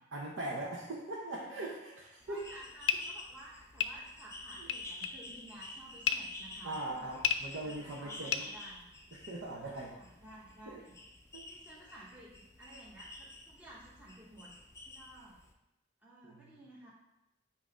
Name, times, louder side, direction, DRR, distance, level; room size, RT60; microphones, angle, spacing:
voice 1, 0.1-2.4 6.6-8.5 9.1-9.9 10.7-10.8 11.3-11.4 16.2-16.5, right 2 dB, 85° right, -4 dB, 0.9 m, -41 dB
voice 2, 2.0-7.1 7.6-8.9 9.7-10.9 11.5-14.5 14.8-15.4 16.0-16.9, right 1 dB, 10° right, -8 dB, 1.1 m, -54 dB
sound 1, 2.2-15.5, left 2 dB, 15° left, 0.5 m, -51 dB
sound 2, 2.6-9.3, left 8 dB, 75° left, 0.5 m, -36 dB
8.4 x 2.9 x 5.0 m, 0.92 s
head